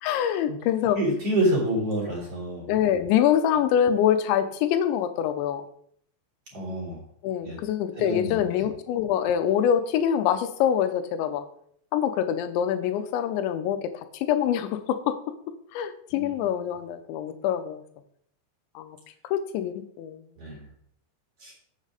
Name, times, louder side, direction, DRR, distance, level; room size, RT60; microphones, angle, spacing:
voice 1, 0.0-1.0 2.7-5.6 7.2-11.4 11.9-15.2 15.7-17.8 18.8-19.0 19.3-20.2, left 9 dB, 85° left, 9 dB, 3.1 m, -25 dB
voice 2, 1.0-2.7 6.5-7.0 7.4-7.6 8.0-8.4 16.1-16.3 20.4-20.6 21.4-21.5, right 1 dB, 35° right, -2 dB, 3.7 m, -27 dB
8.6 x 7.5 x 5.0 m, 0.66 s
omnidirectional pair, 5.1 m